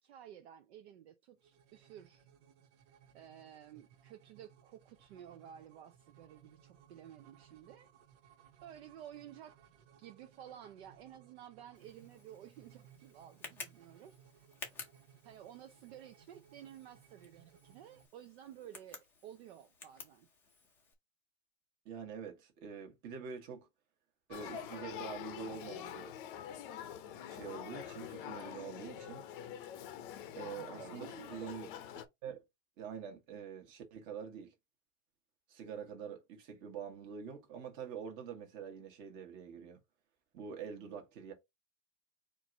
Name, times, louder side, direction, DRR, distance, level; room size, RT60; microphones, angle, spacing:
voice 1, 0.0-2.3 3.1-7.9 8.6-9.6 10.0-14.5 15.2-20.3 30.8-31.5, right 10 dB, 60° right, 0.6 m, -53 dB
sound 1, 1.4-18.1, right 8 dB, 85° right, 1.4 m, -63 dB
Tick, 11.7-20.9, left 4 dB, 5° left, 0.5 m, -54 dB
voice 2, 21.8-23.7 24.3-26.1 27.3-29.2 30.3-31.7 32.2-32.4 32.8-34.5 35.5-39.8 40.3-41.3, right 7 dB, 30° right, 1.3 m, -46 dB
Male speech man speaking / Child speech kid speaking / Conversation, 24.3-32.1, left 10 dB, 45° left, 0.6 m, -45 dB
4.5 x 2.6 x 4.4 m
supercardioid pair, 180°, 36 cm